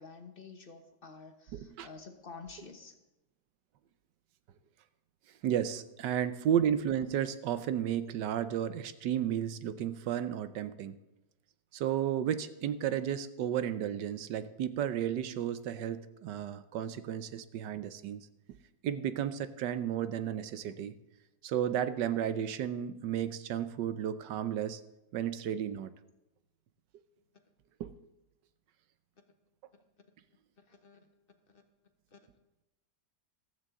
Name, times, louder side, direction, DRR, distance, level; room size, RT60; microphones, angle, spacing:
voice 1, 0.0-2.9 30.6-31.0 31.5-31.6 32.1-32.2, left 4 dB, 35° left, 6 dB, 1.1 m, -50 dB
voice 2, 1.5-1.9 5.4-11.0 11.7-18.3 18.8-20.9 21.4-24.8 25.1-25.9 27.8-27.9, right 9 dB, 75° right, 12 dB, 1.3 m, -33 dB
15.0 x 13.5 x 3.7 m, 0.97 s
omnidirectional pair, 1.9 m